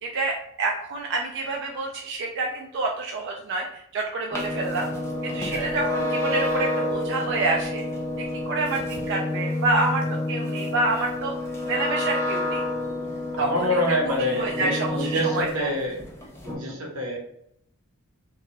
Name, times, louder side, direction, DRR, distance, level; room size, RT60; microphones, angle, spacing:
voice 1, 0.0-4.9 5.2-7.8 8.4-11.3 11.7-12.6 13.4-13.7 14.1-15.7, right 2 dB, 55° right, 1 dB, 0.3 m, -28 dB
sound 1, 4.3-15.6 16.0-16.5, left 1 dB, 10° left, 0.4 m, -29 dB
voice 2, 5.4-5.8 13.4-16.0 16.4-17.2, equal, 90° right, 0 dB, 0.8 m, -26 dB
2.9 x 2.2 x 2.7 m, 0.74 s
head